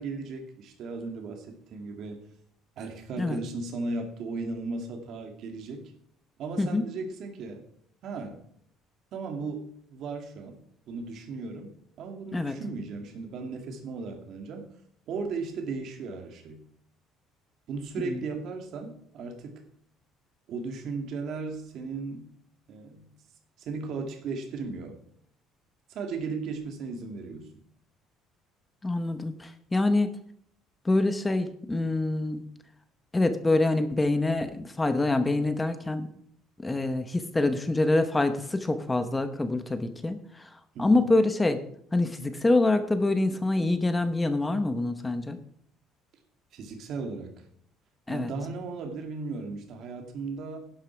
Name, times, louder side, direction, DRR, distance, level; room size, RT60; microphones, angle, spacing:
voice 1, 0.0-2.2 2.8-5.9 6.4-7.6 8.0-8.4 9.1-10.6 10.9-11.7 12.0-14.7 15.1-16.6 17.7-19.6 20.5-22.3 22.7-23.1 23.6-25.0 25.9-27.6 40.7-41.1 46.5-47.3 48.1-50.6, right 4 dB, 50° right, 4 dB, 2.2 m, -36 dB
voice 2, 28.8-30.1 30.8-32.4 33.1-36.1 36.6-40.2 40.8-41.6 41.9-45.4 48.1-48.3, left 2 dB, 10° left, 10 dB, 0.8 m, -25 dB
11.5 x 7.7 x 5.9 m, 0.65 s
cardioid pair, 160°, 0 cm